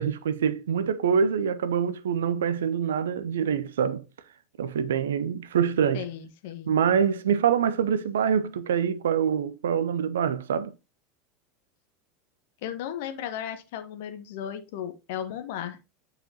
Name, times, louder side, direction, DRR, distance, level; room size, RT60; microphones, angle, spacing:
voice 1, 0.0-4.0 4.6-6.1 6.7-10.7, right 7 dB, 65° right, 0.6 m, -25 dB
voice 2, 5.9-6.7 12.6-15.8, left 9 dB, 55° left, 1.2 m, -35 dB
8.8 x 4.9 x 2.8 m
figure-of-eight pair, 75°, 0 cm